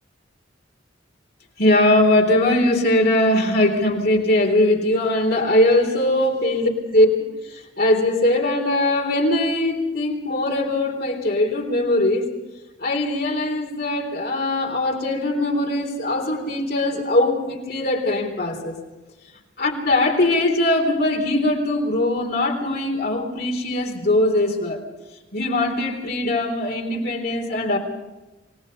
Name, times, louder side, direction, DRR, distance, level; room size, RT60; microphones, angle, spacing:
voice 1, 1.6-7.1 7.8-12.3 12.8-18.7 19.6-24.8 25.3-27.8, left 1 dB, 55° left, 1 dB, 3.8 m, -20 dB
28.5 x 18.0 x 5.6 m, 1.1 s
head